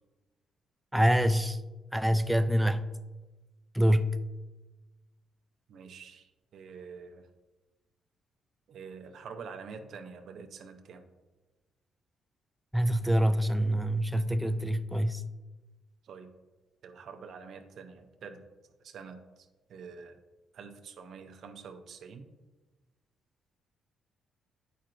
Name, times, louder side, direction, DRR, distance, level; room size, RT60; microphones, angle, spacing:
voice 1, 0.9-1.6 1.9-2.9 3.7-4.1 12.7-15.2, equal, 5° right, 11 dB, 0.4 m, -25 dB
voice 2, 5.7-7.3 8.7-11.1 16.0-16.3 16.8-18.4 18.8-20.2 20.5-22.3, right 5 dB, 65° right, 6 dB, 0.6 m, -46 dB
10.0 x 4.4 x 2.5 m, 1.2 s
cardioid pair, 90°, 0 cm